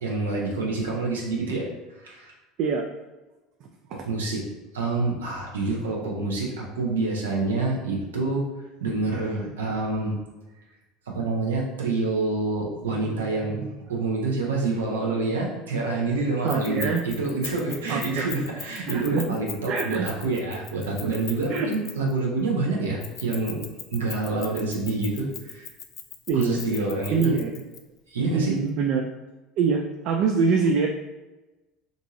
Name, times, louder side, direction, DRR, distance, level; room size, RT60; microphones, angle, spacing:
voice 1, 0.0-2.3 3.9-4.4 4.7-8.4 8.8-10.2 11.1-13.6 13.9-23.6 23.9-25.7 26.3-27.3 28.1-28.5, right 3 dB, 90° right, -2 dB, 0.7 m, -27 dB
voice 2, 16.4-17.0 17.9-18.2 18.9-19.2 19.7-20.1 21.5-21.7 26.3-27.5 28.3-29.1 29.6-30.9, right 5 dB, 60° right, 2 dB, 0.3 m, -25 dB
Keys jangling, 16.5-22.2 23.0-27.8, left 8 dB, 50° left, 0.4 m, -39 dB
2.6 x 2.5 x 2.9 m, 1.1 s
hypercardioid pair, 80°, 0 cm